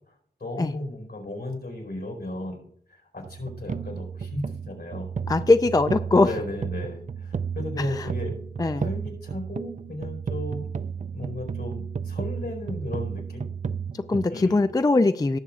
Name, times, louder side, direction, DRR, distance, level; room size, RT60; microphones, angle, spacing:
voice 1, 0.4-5.1 6.2-8.3 8.8-10.7 11.1-13.4 14.3-14.7, left 1 dB, 75° left, 1 dB, 4.3 m, -35 dB
sound 1, 3.2-14.3, right 6 dB, 45° right, 0.4 m, -33 dB
voice 2, 5.3-6.3 7.8-8.1 8.6-8.9 13.9-15.4, left 3 dB, 20° left, 11 dB, 0.4 m, -21 dB
18.5 x 7.2 x 2.4 m, 0.64 s
wide cardioid pair, 70°, 17 cm